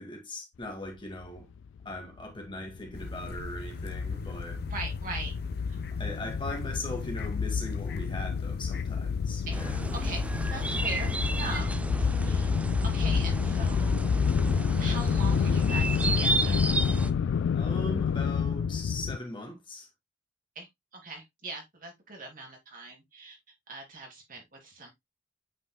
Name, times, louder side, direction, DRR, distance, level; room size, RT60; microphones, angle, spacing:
voice 1, 0.0-1.5 1.9-4.6 6.0-9.9 17.5-19.9, left 1 dB, 25° left, 2.1 m, -39 dB
sound 1, 1.8-1.9 2.2-2.3 2.6-19.2, left 6 dB, 80° left, 0.3 m, -29 dB
sound 2, 2.9-11.6, left 1 dB, 60° left, 1.0 m, -44 dB
voice 2, 4.7-5.3 5.7-5.8 9.5-9.6 9.9-12.5 12.8-14.1 14.8-16.7 20.5-23.4 23.7-24.9, right 3 dB, 45° right, 3.1 m, -41 dB
sound 3, 9.5-17.1, right 1 dB, 5° right, 0.4 m, -32 dB
9.2 x 5.5 x 2.3 m
head